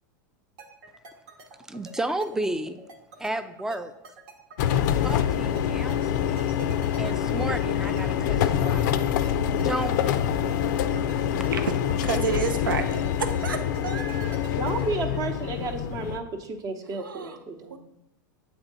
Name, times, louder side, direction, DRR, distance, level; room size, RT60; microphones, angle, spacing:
sound 1, 0.6-15.3, right 3 dB, 65° right, 1.0 m, -47 dB
voice 1, 1.7-2.8 3.2-3.9 4.9-6.7 7.0-8.9 9.5-10.3, right 2 dB, 5° right, 11 dB, 0.4 m, -33 dB
sound 2, 4.6-16.2, left 9 dB, 65° left, 0.4 m, -26 dB
voice 2, 12.0-13.6 13.8-14.4 17.0-17.4 17.7-17.8, right 6 dB, 90° right, 8 dB, 0.5 m, -30 dB
voice 3, 14.4-17.8, right 3 dB, 35° right, 6 dB, 0.8 m, -32 dB
7.8 x 3.6 x 3.9 m, 0.87 s
hypercardioid pair, 100°, 11 cm